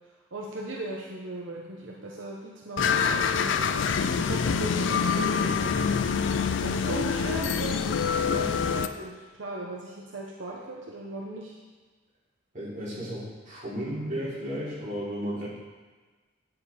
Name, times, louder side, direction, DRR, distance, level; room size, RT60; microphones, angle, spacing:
voice 1, 0.3-3.8 4.1-5.9 6.6-11.6, right 2 dB, 80° right, -2 dB, 1.0 m, -38 dB
sound 1, 2.8-8.9, left 6 dB, 70° left, 0.4 m, -26 dB
voice 2, 12.5-15.5, equal, 40° right, -8 dB, 3.2 m, -34 dB
9.5 x 6.8 x 4.2 m, 1.3 s
head